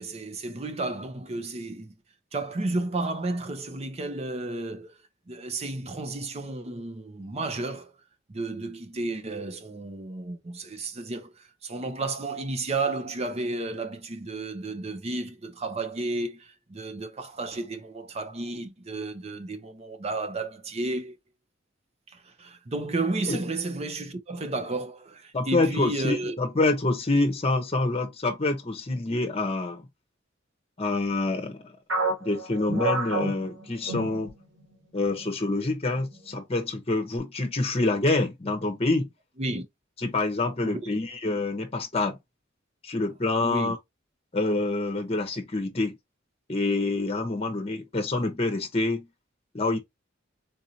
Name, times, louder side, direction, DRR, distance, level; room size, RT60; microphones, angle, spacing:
voice 1, 0.0-1.9 2.3-4.9 5.3-7.9 8.3-21.2 22.1-26.4 39.4-39.6 40.6-40.9 43.4-43.7, right 2 dB, 35° right, 0.6 m, -32 dB
voice 2, 25.3-29.9 30.8-31.7 32.2-34.3 34.9-39.1 40.0-42.2 42.8-43.8 44.3-46.0 46.5-49.1 49.5-49.8, left 2 dB, 30° left, 0.8 m, -26 dB
sound 1, 31.9-34.7 35.1-35.3 35.9-36.4, right 2 dB, 90° right, 2.0 m, -30 dB
3.9 x 2.7 x 2.7 m
head